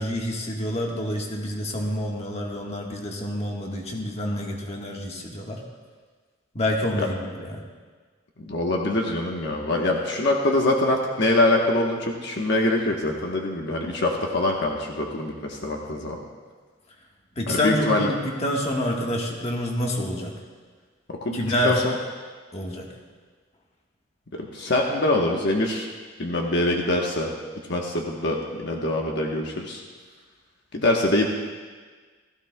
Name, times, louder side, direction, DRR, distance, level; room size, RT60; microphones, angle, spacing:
voice 1, 0.0-5.6 6.5-7.6 17.4-20.3 21.3-21.8 22.5-22.9, left 1 dB, 35° left, -1 dB, 1.4 m, -27 dB
voice 2, 8.5-16.2 17.5-18.1 21.1-21.9 24.5-25.9 26.2-27.3 27.7-29.8 30.7-31.3, left 2 dB, 60° left, 0 dB, 1.1 m, -24 dB
16.0 x 14.5 x 2.2 m, 1.5 s
head